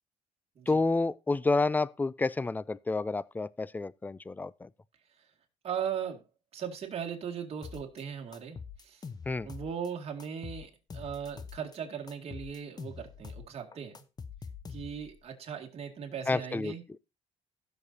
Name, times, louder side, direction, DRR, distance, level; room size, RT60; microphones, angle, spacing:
voice 1, 0.7-4.7 9.3-9.5 16.3-16.7, left 3 dB, 15° left, 0.4 m, -29 dB
voice 2, 5.6-6.2 6.5-9.0 9.4-14.0 14.7-17.0, right 7 dB, 50° right, 2.3 m, -38 dB
sound 1, 7.6-8.0 8.3-9.9 10.2-11.8 12.1-15.2, left 5 dB, 30° left, 0.9 m, -44 dB
16.0 x 6.6 x 2.8 m
cardioid pair, 90°, 13 cm